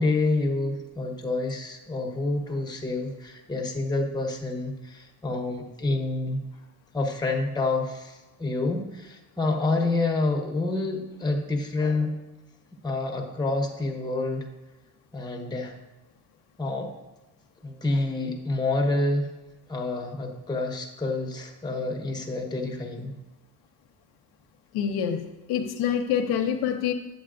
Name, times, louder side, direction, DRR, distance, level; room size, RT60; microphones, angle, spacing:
voice 1, 0.0-6.4 6.9-12.2 12.8-14.5 15.1-15.7 16.6-16.9 17.6-19.3 19.7-23.1, left 2 dB, 10° left, 1 dB, 1.1 m, -28 dB
voice 2, 24.7-26.9, left 8 dB, 75° left, 5 dB, 0.7 m, -26 dB
8.4 x 7.9 x 2.5 m, 1.1 s
cardioid pair, 110°, 39 cm